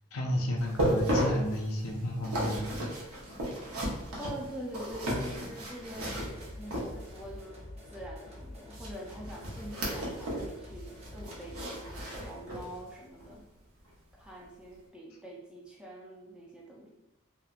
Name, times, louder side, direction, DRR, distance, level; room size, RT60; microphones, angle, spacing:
voice 1, 0.1-2.7, left 1 dB, 70° left, 2 dB, 0.4 m, -32 dB
sound 1, 0.6-7.3 8.7-10.5 10.8-12.8 13.2-13.4 13.9-14.0, equal, 80° right, 0.7 m, -34 dB
voice 2, 4.2-13.5 14.2-16.9, equal, 5° right, -3 dB, 0.3 m, -45 dB
sound 2, 6.0-12.5, left 1 dB, 30° right, 0.7 m, -47 dB
2.9 x 2.0 x 2.4 m, 0.97 s
head